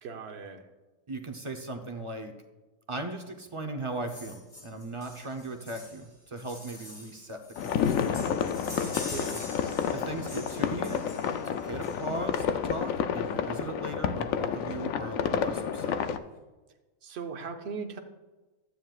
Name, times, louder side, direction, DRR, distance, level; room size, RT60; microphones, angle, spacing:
voice 1, 0.0-0.7 8.7-9.4 17.0-18.0, right 5 dB, 50° right, 5 dB, 1.1 m, -39 dB
voice 2, 1.1-2.3 2.9-8.3 9.9-11.0 11.4-16.0, right 2 dB, 30° right, 4 dB, 0.6 m, -38 dB
sound 1, 4.1-12.4 13.5-13.6 13.9-14.0 14.2-14.4 14.7-15.3 15.8-15.9, left 1 dB, 45° left, 3.5 m, -45 dB
sound 2, 7.6-16.2, left 8 dB, 70° left, 0.9 m, -30 dB
13.0 x 9.2 x 2.4 m, 1.2 s
omnidirectional pair, 1.5 m